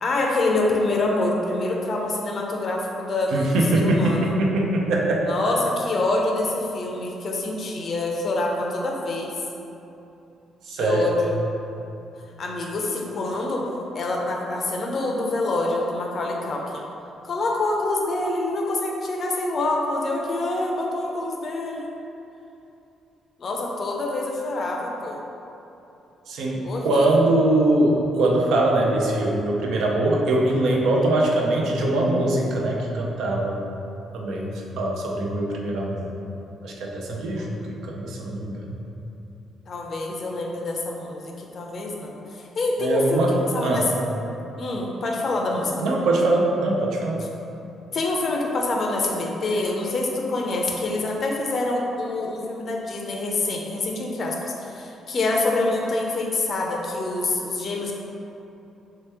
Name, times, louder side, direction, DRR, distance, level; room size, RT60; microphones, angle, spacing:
voice 1, 0.0-4.3 5.3-9.4 10.7-11.4 12.4-13.7 13.9-16.8 17.2-21.9 23.4-25.2 26.6-27.1 37.4-37.5 39.7-44.0 44.6-45.9 47.9-57.9, left 2 dB, 50° left, 0 dB, 0.5 m, -26 dB
voice 2, 3.3-5.3 10.7-11.1 26.3-33.6 34.1-36.1 36.6-38.8 42.8-43.9 45.8-47.3, right 1 dB, 80° right, -1 dB, 0.5 m, -22 dB
3.2 x 2.9 x 3.4 m, 2.9 s
cardioid pair, 90°, 0 cm